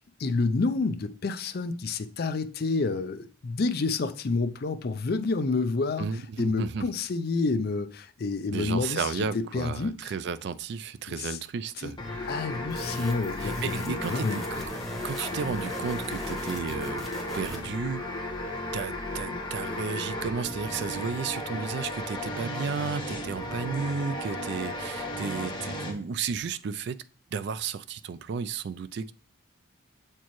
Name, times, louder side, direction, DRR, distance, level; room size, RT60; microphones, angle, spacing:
voice 1, 0.2-10.0 11.1-11.4 11.8-11.9 12.3-14.4, left 3 dB, 50° left, 0.4 m, -29 dB
voice 2, 6.0-6.9 8.5-12.3 13.4-14.6 15.0-17.1 17.3-18.0 18.7-27.0 27.3-29.1, right 5 dB, 55° right, 0.3 m, -33 dB
sound 1, 12.0-25.9, left 1 dB, 20° left, 1.1 m, -35 dB
sound 2, 12.7-17.8, left 1 dB, ahead, 1.1 m, -39 dB
7.0 x 4.4 x 3.0 m
head